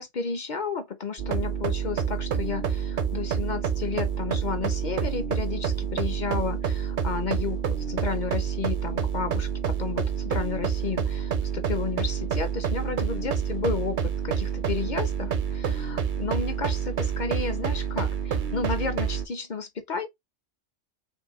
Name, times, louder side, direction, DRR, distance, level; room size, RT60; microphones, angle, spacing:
voice 1, 0.0-20.1, left 5 dB, 50° left, 0.6 m, -32 dB
sound 1, 1.2-19.2, right 7 dB, 50° right, 0.7 m, -28 dB
5.1 x 2.5 x 3.0 m
omnidirectional pair, 1.3 m